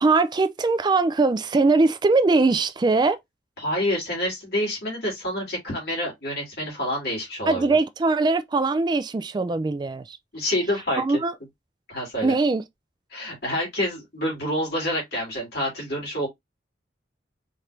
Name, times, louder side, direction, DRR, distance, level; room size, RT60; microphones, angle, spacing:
voice 1, 0.0-3.2 7.5-10.2 11.0-11.3 12.2-12.6, right 3 dB, 25° right, 0.3 m, -21 dB
voice 2, 3.6-7.8 10.3-11.2 11.9-12.3 13.1-16.3, equal, 60° left, 2.6 m, -28 dB
4.3 x 2.5 x 3.3 m
head